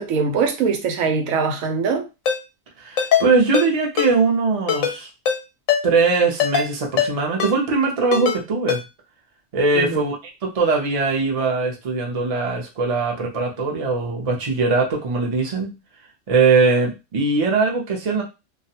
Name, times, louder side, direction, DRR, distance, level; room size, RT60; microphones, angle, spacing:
voice 1, 0.0-2.0 9.7-10.0, right 5 dB, 90° right, 1.0 m, -22 dB
Ringtone, 2.3-2.4 3.0-3.2 3.5-3.7 4.0-4.1 4.7-5.0 5.3-5.4 5.7-5.8 6.4-6.7 7.0-7.1 7.4-7.5 8.1-8.4 8.7-8.8, left 8 dB, 85° left, 1.0 m, -20 dB
voice 2, 2.8-5.1 5.8-8.8 9.5-10.2 10.4-15.7 16.3-18.2, right 4 dB, 40° right, 0.5 m, -20 dB
2.4 x 2.1 x 2.8 m
omnidirectional pair, 1.4 m